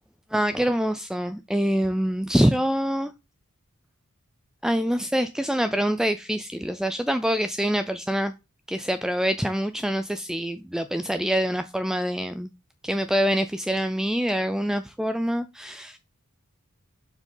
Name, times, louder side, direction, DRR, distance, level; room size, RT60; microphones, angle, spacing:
voice 1, 0.3-3.1 4.6-8.3 8.7-12.5 12.8-16.0, equal, ahead, 0.3 m, -25 dB
7.0 x 4.5 x 5.4 m
head